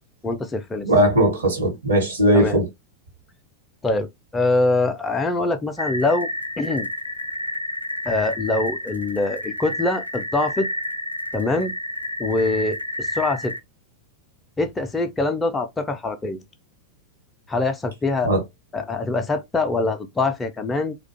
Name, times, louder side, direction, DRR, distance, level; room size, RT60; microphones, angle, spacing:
voice 1, 0.2-0.9 2.3-2.6 3.8-6.3 6.6-6.9 8.1-10.7 11.3-11.7 12.2-13.5 14.6-16.4 17.5-18.3 18.7-21.0, left 2 dB, 15° left, 0.4 m, -24 dB
voice 2, 0.8-2.7 18.2-18.4, right 1 dB, 75° right, 1.0 m, -18 dB
sound 1, 5.8-13.6, left 1 dB, 85° left, 0.3 m, -30 dB
2.4 x 2.2 x 2.6 m
figure-of-eight pair, 90°, 0 cm